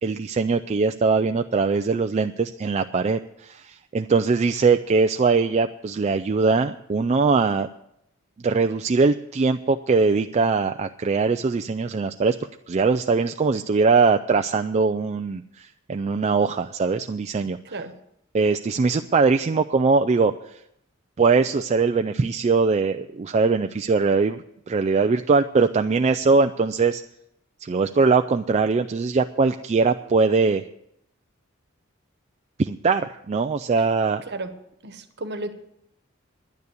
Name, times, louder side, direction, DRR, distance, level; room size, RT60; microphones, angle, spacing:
voice 1, 0.0-7.7 8.4-12.4 12.7-17.6 18.3-20.3 21.2-27.0 27.6-30.6 32.6-34.2, right 4 dB, 30° right, 7 dB, 0.4 m, -21 dB
voice 2, 17.6-17.9 34.3-34.5 34.8-35.5, right 2 dB, 55° right, 9 dB, 1.2 m, -33 dB
10.5 x 9.6 x 8.2 m, 0.78 s
head